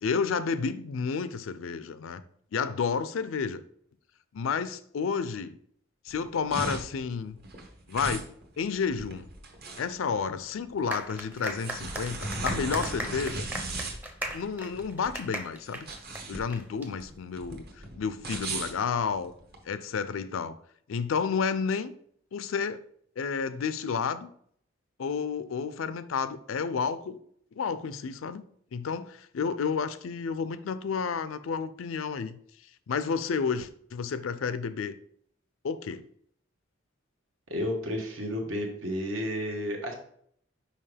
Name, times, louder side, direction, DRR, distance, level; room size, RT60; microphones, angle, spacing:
voice 1, 0.0-2.2 2.5-3.6 4.3-5.6 6.0-7.4 7.9-8.3 8.6-9.3 9.8-13.5 14.3-15.9 16.3-19.3 19.7-20.6 20.9-21.9 22.3-22.8 23.2-24.3 25.0-27.2 27.6-28.4 28.7-32.4 32.9-35.0 35.6-36.0, left 5 dB, 80° left, 0.4 m, -31 dB
sound 1, 6.1-19.6, right 2 dB, 50° right, 1.1 m, -37 dB
sound 2, 10.9-16.9, right 1 dB, 10° right, 0.6 m, -37 dB
voice 2, 37.5-39.9, equal, 80° right, 1.3 m, -31 dB
5.5 x 5.0 x 3.4 m
head